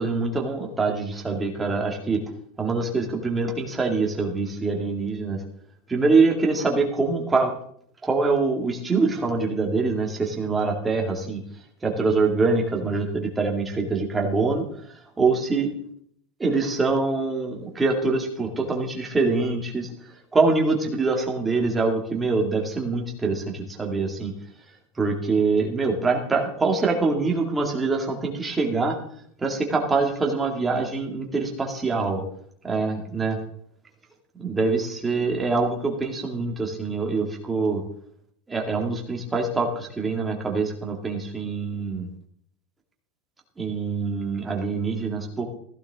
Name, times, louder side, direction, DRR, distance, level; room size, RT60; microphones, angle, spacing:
voice 1, 0.0-2.2 2.6-5.4 5.9-7.5 8.0-11.4 11.8-14.6 15.2-15.7 16.4-19.9 20.3-24.3 25.0-29.0 29.4-32.2 32.6-33.4 34.4-37.8 38.5-42.1 43.6-45.4, right 3 dB, 10° right, 0 dB, 2.3 m, -24 dB
15.5 x 14.5 x 3.7 m, 0.64 s
supercardioid pair, 160°, 0 cm